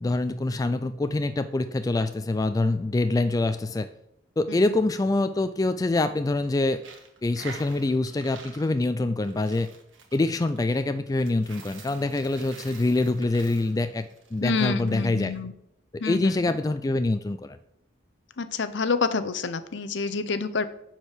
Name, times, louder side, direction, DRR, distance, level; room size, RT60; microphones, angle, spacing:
voice 1, 0.0-3.9 4.4-6.8 7.2-9.7 10.1-15.3 16.0-17.6, left 2 dB, 20° left, 10 dB, 0.3 m, -25 dB
Coin (dropping), 6.7-14.9, right 5 dB, 75° right, 1.6 m, -47 dB
voice 2, 14.4-15.5 16.0-16.5 18.4-20.7, left 4 dB, 65° left, 12 dB, 0.7 m, -28 dB
10.0 x 4.5 x 6.6 m, 0.76 s
head